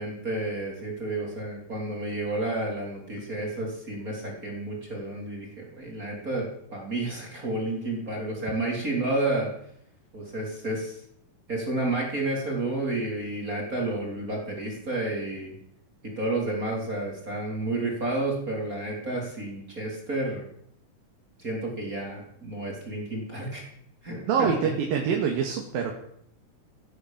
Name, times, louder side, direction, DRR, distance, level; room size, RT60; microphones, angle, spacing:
voice 1, 0.0-9.5 10.1-11.0 11.5-15.5 16.0-20.4 21.4-23.6 24.0-24.7, right 2 dB, 25° right, -1 dB, 3.9 m, -31 dB
voice 2, 24.3-25.9, right 7 dB, 80° right, 1 dB, 3.5 m, -25 dB
17.5 x 10.0 x 7.5 m, 0.70 s
omnidirectional pair, 4.1 m